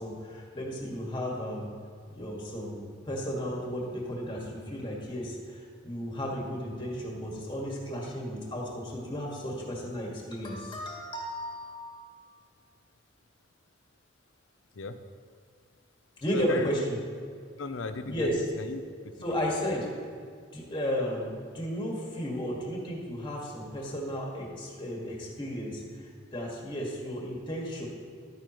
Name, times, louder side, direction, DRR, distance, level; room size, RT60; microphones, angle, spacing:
voice 1, 0.0-1.7 2.1-11.9 16.2-17.0 18.1-18.3 19.2-19.9 20.5-27.9, equal, 25° left, -3 dB, 1.8 m, -34 dB
voice 2, 14.7-15.1 16.3-16.7 17.6-19.5, left 3 dB, 90° left, 9 dB, 0.6 m, -38 dB
12.0 x 9.2 x 3.0 m, 2.1 s
head